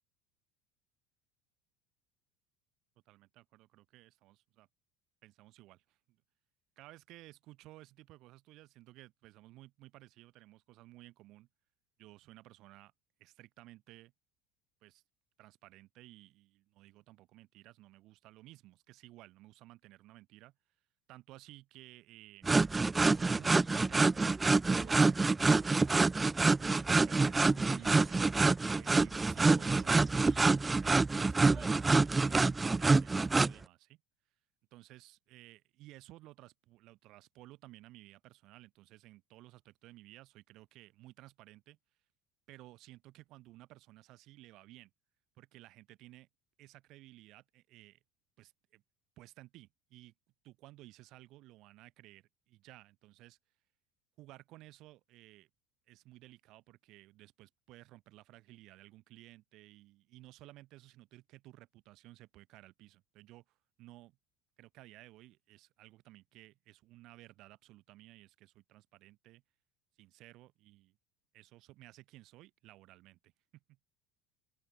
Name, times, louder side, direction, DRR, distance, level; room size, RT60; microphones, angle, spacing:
voice 1, 3.1-4.7 5.2-6.2 6.8-11.5 12.0-12.9 13.2-14.1 14.8-15.0 15.4-20.5 21.1-22.4 23.0-26.2 26.6-28.2 28.7-34.0 34.7-41.8 42.5-44.9 45.4-46.3 46.6-48.0 48.4-48.8 49.2-50.1 50.4-53.4 54.2-55.5 55.9-64.2 64.6-69.4 70.0-71.0 71.3-73.8, right 17 dB, 55° right, 6.5 m, -56 dB
sound 1, 22.4-33.5, right 3 dB, 15° right, 0.5 m, -27 dB
open air
cardioid pair, 135°, 0 cm